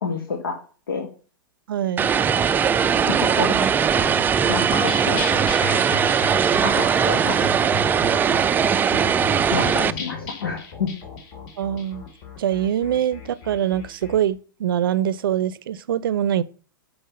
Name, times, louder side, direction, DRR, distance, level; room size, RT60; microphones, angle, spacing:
voice 1, 0.0-0.5 0.9-1.1 3.2-5.3 6.6-7.7 9.5-10.9, left 4 dB, 85° left, 1.4 m, -29 dB
voice 2, 1.7-2.1 11.6-12.1 12.4-16.4, right 10 dB, 75° right, 0.5 m, -23 dB
Vehicle, 2.0-9.9, right 7 dB, 15° right, 0.3 m, -20 dB
sound 1, 4.7-14.2, left 3 dB, 45° left, 2.3 m, -34 dB
5.7 x 5.6 x 5.4 m
hypercardioid pair, 110°, 12 cm